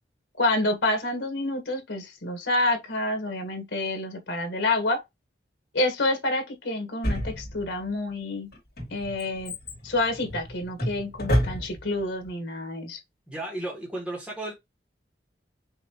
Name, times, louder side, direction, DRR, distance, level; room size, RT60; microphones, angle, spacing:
voice 1, 0.4-5.0 5.7-8.5 8.9-9.5 9.8-13.0, left 2 dB, 85° left, 1.5 m, -28 dB
Drawer open or close, 7.0-7.9 8.5-12.0 12.3-12.4, equal, 55° left, 2.4 m, -29 dB
voice 2, 13.3-14.5, right 1 dB, 5° right, 1.4 m, -34 dB
5.6 x 2.8 x 2.9 m
head